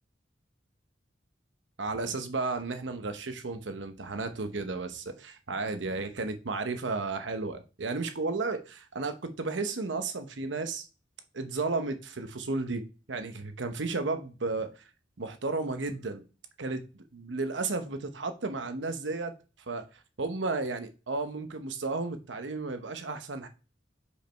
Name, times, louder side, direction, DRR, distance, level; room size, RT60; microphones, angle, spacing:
voice 1, 1.8-10.9 11.3-14.8 15.2-16.3 16.6-19.3 19.7-23.5, right 3 dB, 85° right, 0.9 m, -33 dB
5.2 x 5.0 x 4.4 m
head